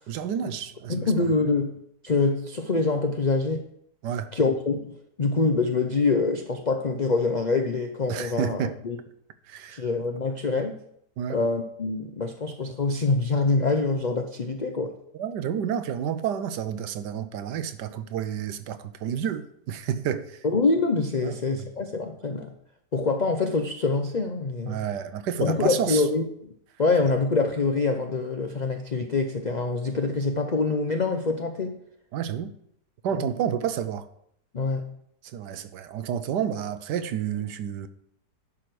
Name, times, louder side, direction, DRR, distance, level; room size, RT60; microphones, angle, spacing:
voice 1, 0.1-1.1 4.0-4.3 8.1-8.8 9.5-9.8 11.2-11.4 15.1-20.4 21.2-21.4 24.7-26.0 32.1-32.5 33.0-34.1 35.3-37.9, right 9 dB, 85° right, 1.3 m, -30 dB
voice 2, 0.9-1.8 2.0-3.7 4.3-9.0 9.7-10.8 11.3-15.0 20.4-22.5 22.9-24.8 25.4-26.2 26.8-31.7 33.1-33.3 34.5-34.9, left 3 dB, 65° left, 0.4 m, -25 dB
11.0 x 4.9 x 6.1 m
omnidirectional pair, 1.8 m